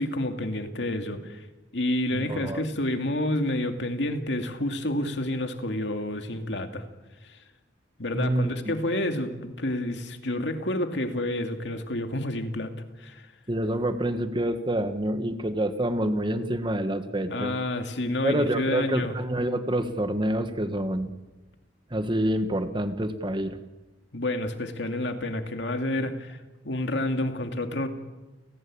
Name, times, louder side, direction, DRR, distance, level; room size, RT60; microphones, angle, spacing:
voice 1, 0.0-1.5 1.7-6.9 7.3-7.4 8.0-13.3 17.3-19.2 24.1-26.4 26.6-27.9, left 1 dB, 70° left, 6 dB, 2.4 m, -29 dB
voice 2, 2.1-2.6 8.1-8.7 13.5-17.5 18.2-21.1 21.9-23.6, right 1 dB, 25° right, 9 dB, 1.5 m, -27 dB
29.5 x 18.5 x 8.8 m, 1.2 s
head